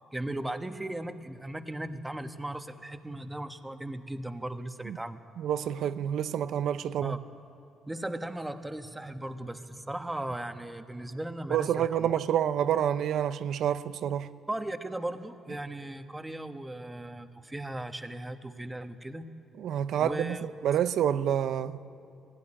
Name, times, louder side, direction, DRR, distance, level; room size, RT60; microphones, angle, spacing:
voice 1, 0.1-5.2 7.0-7.2 7.9-12.1 14.5-19.3 20.0-20.4, right 1 dB, 10° right, 1.3 m, -37 dB
voice 2, 5.4-7.2 11.5-14.3 19.6-20.4 20.6-21.8, right 10 dB, 75° right, 0.7 m, -28 dB
20.5 x 17.0 x 10.0 m
cardioid pair, 90°, 0 cm